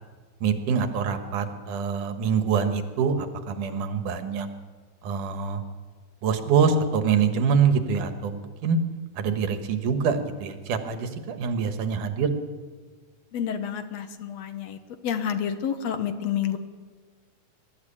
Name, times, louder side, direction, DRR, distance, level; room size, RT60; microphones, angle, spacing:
voice 1, 0.4-4.5 5.0-5.6 6.2-8.8 9.2-12.3, right 6 dB, 90° right, 8 dB, 3.0 m, -25 dB
voice 2, 13.3-14.8 15.0-16.6, left 8 dB, 65° left, 9 dB, 2.2 m, -29 dB
23.0 x 13.0 x 8.7 m, 1.5 s
omnidirectional pair, 3.5 m